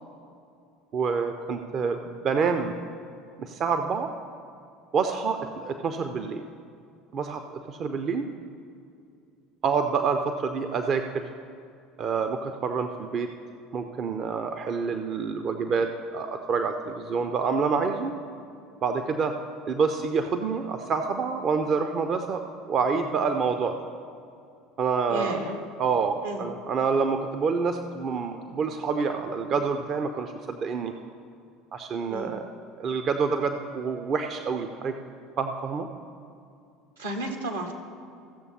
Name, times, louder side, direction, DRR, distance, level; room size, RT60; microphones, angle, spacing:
voice 1, 0.9-2.7 3.4-4.1 4.9-6.5 7.1-7.4 7.7-8.3 9.6-11.3 12.0-13.3 13.7-18.1 18.8-19.3 19.7-22.4 22.7-23.7 24.8-25.4 25.8-30.9 31.7-32.4 32.8-34.9 35.4-35.9, right 5 dB, 40° right, 7 dB, 0.5 m, -27 dB
voice 2, 25.1-25.6 26.2-26.5 32.1-32.3 37.0-37.7, right 1 dB, 75° right, 2 dB, 1.4 m, -33 dB
15.0 x 6.8 x 4.3 m, 2.5 s
figure-of-eight pair, 65°, 0 cm